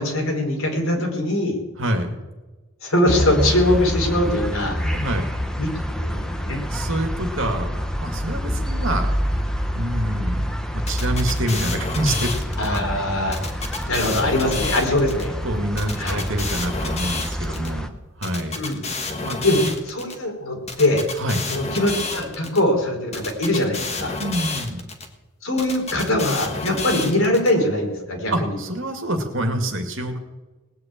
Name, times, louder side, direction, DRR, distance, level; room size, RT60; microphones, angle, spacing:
voice 1, 0.0-1.6 2.8-4.8 5.6-5.7 6.0-6.6 12.6-13.4 13.9-15.4 16.0-16.2 18.6-18.8 19.4-19.6 19.9-21.0 21.5-24.2 25.4-28.6, left 1 dB, 70° left, 2 dB, 3.8 m, -22 dB
voice 2, 1.8-2.1 4.8-5.3 6.7-9.1 9.7-12.3 12.7-12.8 15.4-17.9 18.2-18.6 19.1-19.4 21.2-21.4 24.2-24.9 28.3-30.2, right 1 dB, 60° right, 5 dB, 2.3 m, -26 dB
sound 1, 3.1-17.9, equal, 5° left, 0.8 m, -27 dB
sound 2, 10.9-12.8 13.3-15.2 15.8-17.7 18.2-20.2 20.7-22.6 23.1-25.1 25.6-27.5, left 3 dB, 30° left, 1.6 m, -30 dB
19.0 x 6.8 x 8.8 m, 1.2 s
head